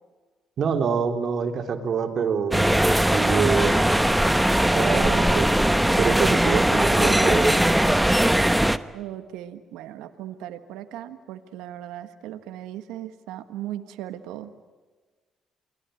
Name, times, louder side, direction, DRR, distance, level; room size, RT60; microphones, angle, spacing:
voice 1, 0.6-2.7 3.1-3.8 4.7-5.5 6.0-7.6, right 6 dB, 60° right, 4 dB, 3.4 m, -26 dB
sound 1, 2.5-8.8, right 1 dB, 5° right, 1.2 m, -20 dB
voice 2, 8.9-14.5, right 12 dB, 80° right, 9 dB, 1.4 m, -37 dB
29.0 x 21.0 x 9.2 m, 1.3 s
supercardioid pair, 60°, 0 cm